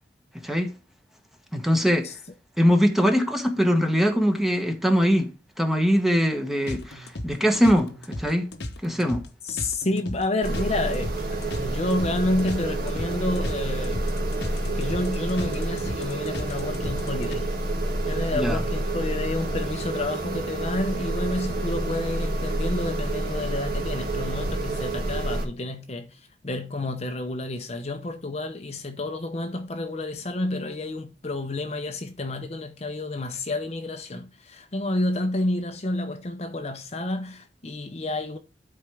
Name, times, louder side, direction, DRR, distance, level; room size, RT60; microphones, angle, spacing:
voice 1, 1.5-2.1 2.6-5.3 5.6-7.9 8.2-8.5 8.8-9.2 18.3-18.6, equal, ahead, 1.1 m, -22 dB
sound 1, 6.7-17.4, left 1 dB, 65° left, 1.0 m, -36 dB
voice 2, 9.4-14.1 14.6-17.5 18.1-38.4, left 2 dB, 35° left, 0.8 m, -30 dB
sound 2, 10.4-25.5, right 2 dB, 55° right, 2.2 m, -28 dB
11.5 x 4.4 x 3.4 m
head